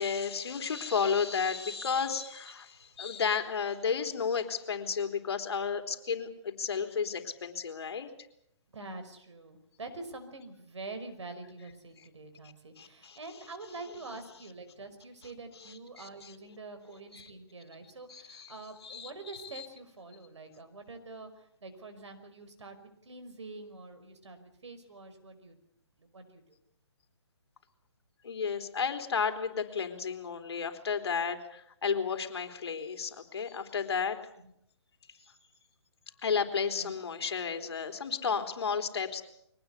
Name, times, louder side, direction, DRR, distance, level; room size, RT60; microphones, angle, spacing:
voice 1, 0.0-8.1 12.8-13.2 16.0-16.1 17.1-17.3 18.1-18.5 18.8-19.1 19.6-19.7 28.2-34.2 36.2-39.2, left 6 dB, 60° left, 6 dB, 3.6 m, -32 dB
voice 2, 8.7-22.8 23.0-25.6 26.0-26.6 34.4-34.5 36.8-37.0, right 3 dB, 75° right, 8 dB, 5.4 m, -46 dB
23.0 x 19.0 x 8.3 m, 0.74 s
hypercardioid pair, 155°, 15 cm